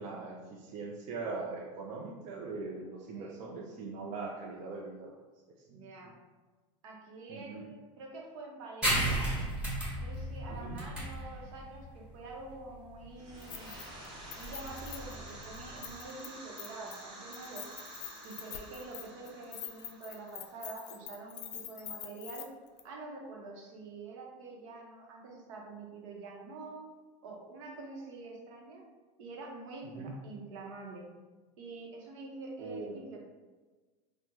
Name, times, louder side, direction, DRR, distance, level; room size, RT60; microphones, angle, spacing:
voice 1, 0.0-5.1 5.7-6.1 7.3-7.7 10.5-10.8 30.0-30.2 32.6-33.0, right 3 dB, 50° right, -1 dB, 0.4 m, -41 dB
voice 2, 5.7-6.2 6.8-9.3 10.0-13.7 14.4-17.7 18.2-22.5 22.8-26.9 27.2-28.8 29.2-31.1 31.6-33.2, right 3 dB, 75° right, -1 dB, 0.8 m, -46 dB
sound 1, 8.8-15.9, right 1 dB, 5° right, 1.1 m, -35 dB
sound 2, 13.1-21.7, right 1 dB, 30° right, 0.9 m, -49 dB
Keys jangling, 13.4-14.1 14.3-16.3 16.6-17.0 17.3-22.4 22.8-22.9, left 10 dB, 65° left, 0.4 m, -45 dB
3.3 x 2.1 x 2.9 m, 1.3 s
supercardioid pair, 115°, 16 cm